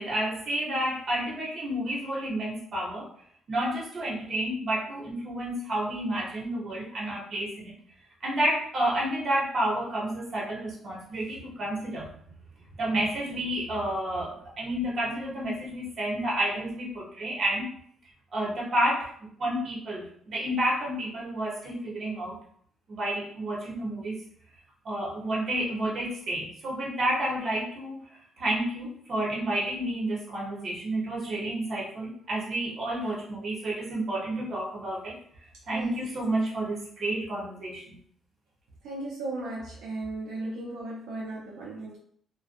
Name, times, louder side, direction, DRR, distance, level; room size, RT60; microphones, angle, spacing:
voice 1, 0.0-3.1 3.5-7.7 8.2-12.3 12.8-17.7 18.3-19.1 19.4-22.4 22.9-24.2 24.8-28.0 28.4-35.2 35.7-38.0, right 1 dB, 55° right, -4 dB, 1.0 m, -30 dB
voice 2, 38.8-42.0, right 2 dB, 90° right, -5 dB, 0.6 m, -36 dB
2.5 x 2.2 x 2.5 m, 0.62 s
cardioid pair, 90°, 0 cm